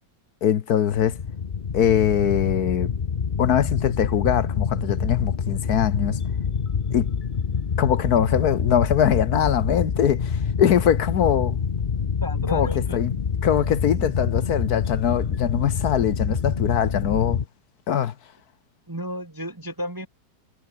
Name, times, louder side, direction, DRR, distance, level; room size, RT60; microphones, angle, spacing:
voice 1, 0.4-1.2 1.7-2.9 3.4-6.2 6.9-7.1 7.8-11.6 12.5-13.1 13.4-17.4 17.9-18.1, left 9 dB, 65° left, 1.4 m, -22 dB
sound 1, 1.0-17.5, left 6 dB, 40° left, 0.8 m, -26 dB
voice 2, 12.2-13.0 14.0-14.1 18.9-20.1, equal, 15° right, 0.9 m, -32 dB
omnidirectional pair, 1.9 m